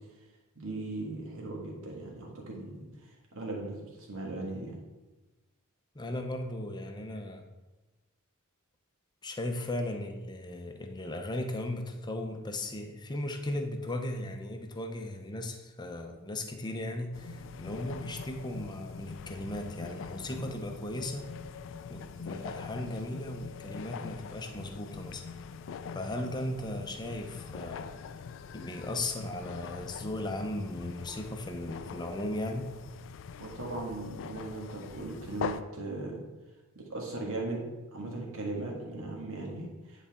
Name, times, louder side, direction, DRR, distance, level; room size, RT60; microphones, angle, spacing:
voice 1, 0.5-2.8 3.3-4.8 33.4-36.2 36.7-37.6 37.9-40.1, right 2 dB, 65° right, -1 dB, 1.6 m, -38 dB
voice 2, 5.9-7.4 9.2-21.3 21.9-25.2 25.9-27.9 28.5-32.7, left 1 dB, 20° left, 4 dB, 0.7 m, -37 dB
sound 1, 17.1-35.6, left 6 dB, 60° left, 0.3 m, -43 dB
9.8 x 4.1 x 3.5 m, 1.1 s
head